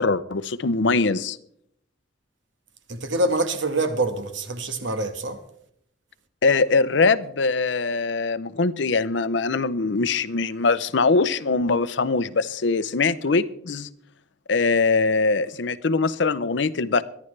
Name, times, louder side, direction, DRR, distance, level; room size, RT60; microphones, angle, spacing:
voice 1, 0.0-1.4 6.4-13.9 14.5-17.0, left 4 dB, 70° left, 0.6 m, -22 dB
voice 2, 2.9-5.4, right 2 dB, 75° right, 1.5 m, -25 dB
23.5 x 11.5 x 3.3 m
head